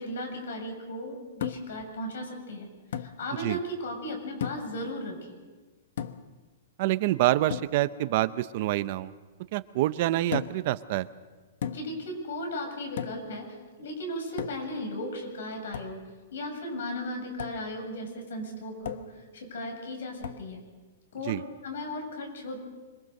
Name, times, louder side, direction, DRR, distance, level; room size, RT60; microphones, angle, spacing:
voice 1, 0.0-5.4 11.6-13.5 13.8-16.0 16.3-20.6 21.1-21.4 21.6-22.6, left 1 dB, 75° left, 3 dB, 7.5 m, -36 dB
sound 1, 1.4-1.8 2.9-3.2 4.4-4.8 6.0-6.4 7.5-7.8 10.3-10.7 11.6-12.0 13.0-13.3 14.4-14.8 15.7-16.0 17.4-17.6 18.8-19.2 20.2-20.5, left 9 dB, 60° left, 1.2 m, -35 dB
voice 2, 6.8-9.1 9.5-11.1 21.3-21.4, right 15 dB, 40° right, 14 dB, 0.7 m, -26 dB
26.0 x 23.0 x 6.6 m, 1.4 s
hypercardioid pair, 170°, 0 cm